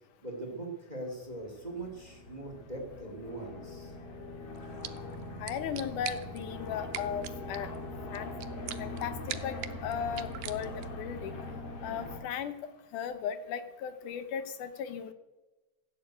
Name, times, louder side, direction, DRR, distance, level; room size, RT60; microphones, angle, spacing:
voice 1, 0.2-3.9, right 2 dB, 15° right, 3 dB, 2.0 m, -41 dB
Helicopter Distant Los Angeles River, 1.2-12.2, left 2 dB, 50° left, 2.7 m, -42 dB
sound 1, 4.5-11.0, right 13 dB, 80° right, 2.4 m, -45 dB
voice 2, 5.4-7.7 8.1-8.3 8.8-11.4 11.8-12.5 12.9-15.1, left 8 dB, 70° left, 11 dB, 2.3 m, -36 dB
15.5 x 9.7 x 7.9 m, 1.1 s
omnidirectional pair, 4.0 m